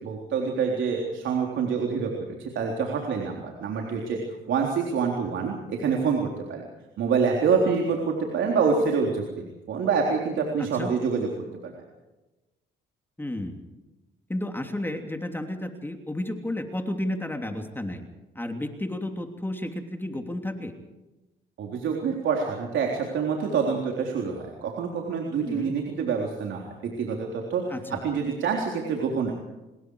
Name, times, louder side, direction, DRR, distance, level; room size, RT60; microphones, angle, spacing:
voice 1, 0.0-4.2 4.5-6.6 7.0-11.3 11.6-11.7 21.6-27.6 28.0-29.3, right 5 dB, 75° right, 0 dB, 3.8 m, -26 dB
voice 2, 10.6-10.9 13.2-13.6 14.3-18.0 18.3-20.7 25.4-25.7 27.7-28.0, left 1 dB, 10° left, 4 dB, 3.1 m, -32 dB
27.0 x 21.5 x 4.9 m, 1.1 s
cardioid pair, 90°, 20 cm